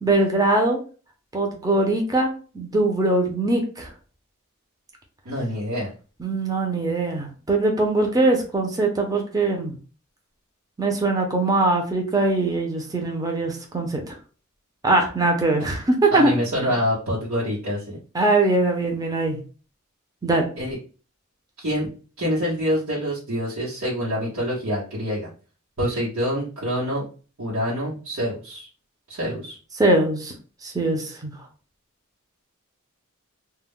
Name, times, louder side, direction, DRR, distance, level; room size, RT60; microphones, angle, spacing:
voice 1, 0.0-0.8 1.3-3.9 6.2-9.7 10.8-14.2 14.8-16.3 18.1-19.4 20.2-20.5 29.8-30.3 30.6-31.3, right 2 dB, 15° right, 2 dB, 0.5 m, -22 dB
voice 2, 5.2-5.9 16.1-18.0 20.6-20.8 21.6-21.9 22.2-25.3 25.8-27.0 27.4-28.7 29.1-29.6, equal, 75° right, -9 dB, 1.0 m, -26 dB
2.2 x 2.0 x 3.5 m, 0.37 s
head